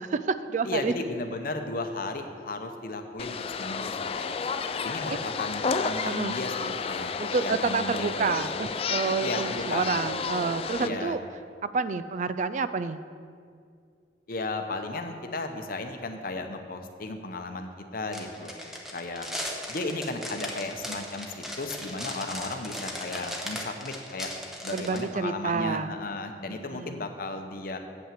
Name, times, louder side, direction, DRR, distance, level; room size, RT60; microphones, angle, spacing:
voice 1, 0.0-0.9 6.0-6.4 7.2-11.2 11.7-13.0 24.7-26.0 26.5-27.1, right 4 dB, 45° right, 13 dB, 0.4 m, -29 dB
voice 2, 0.6-4.4 4.8-8.4 9.2-9.9 10.8-11.2 14.3-18.5 18.9-19.3 19.7-24.3 24.6-27.8, left 2 dB, 55° left, 6 dB, 0.8 m, -35 dB
sound 1, 3.2-10.9, left 5 dB, 35° left, 0.3 m, -31 dB
sound 2, 18.1-25.0, equal, ahead, 0.9 m, -37 dB
8.1 x 5.7 x 7.4 m, 2.3 s
head